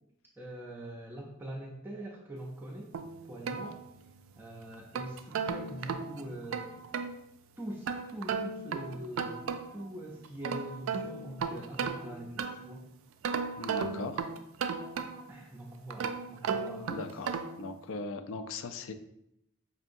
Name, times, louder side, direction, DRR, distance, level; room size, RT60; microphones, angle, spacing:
voice 1, 0.4-2.9 3.2-3.8 4.3-6.8 7.6-9.4 9.7-12.9 15.3-17.1, right 1 dB, 10° right, -3 dB, 0.4 m, -43 dB
sound 1, 2.9-4.3 4.7-7.2 7.9-9.9 10.2-12.8 13.2-15.4 15.9-17.7, right 5 dB, 80° right, 0.3 m, -35 dB
voice 2, 13.6-14.3 16.9-18.9, left 3 dB, 75° left, 8 dB, 0.4 m, -39 dB
5.4 x 2.8 x 2.5 m, 0.78 s
head